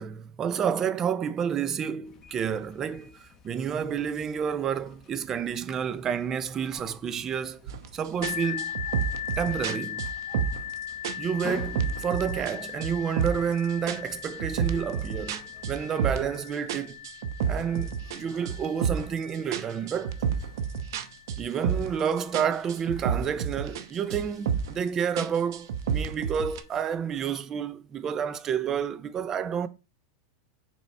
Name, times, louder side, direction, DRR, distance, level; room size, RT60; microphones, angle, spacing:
voice 1, 0.0-9.0 9.4-10.5 11.2-17.0 17.5-20.2 21.4-29.7, right 7 dB, 20° right, 0.5 m, -30 dB
sound 1, 2.0-15.9, left 5 dB, 25° left, 1.0 m, -50 dB
sound 2, 7.7-7.9 8.2-10.7 11.0-12.6 12.8-13.5 13.9-16.4 16.7-19.2 19.5-22.1 22.3-23.8 24.1-24.8 25.2-26.6, right 7 dB, 75° right, 0.8 m, -30 dB
sound 3, 8.2-23.8 24.5-24.6 25.2-25.3, left 10 dB, 85° left, 1.4 m, -40 dB
6.7 x 4.5 x 3.3 m
supercardioid pair, 155°, 2 cm